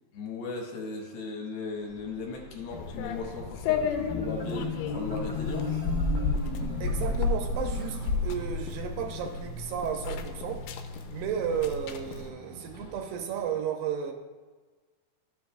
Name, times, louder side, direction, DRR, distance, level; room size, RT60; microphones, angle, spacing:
voice 1, 0.1-5.8, left 3 dB, 70° left, -1 dB, 2.8 m, -37 dB
sound 1, 1.7-13.6, right 1 dB, 45° right, 0.6 m, -49 dB
sound 2, 2.7-12.3, left 4 dB, 90° left, 2.8 m, -32 dB
Marimba xylophone, 3.7-8.8, left 5 dB, 40° left, 1.6 m, -35 dB
voice 2, 6.8-10.6 11.1-14.1, right 7 dB, 80° right, 3 dB, 2.6 m, -33 dB
13.0 x 7.1 x 2.3 m, 1.4 s
omnidirectional pair, 4.9 m